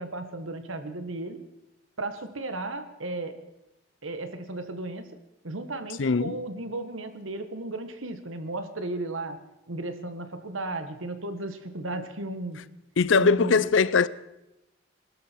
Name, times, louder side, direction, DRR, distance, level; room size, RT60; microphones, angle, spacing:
voice 1, 0.0-1.4 2.0-3.4 4.0-5.1 5.4-9.4 9.7-12.6 13.2-13.6, right 2 dB, 90° right, 1.6 m, -34 dB
voice 2, 6.0-6.4 13.0-14.1, left 5 dB, 70° left, 0.6 m, -21 dB
20.5 x 12.5 x 4.6 m
head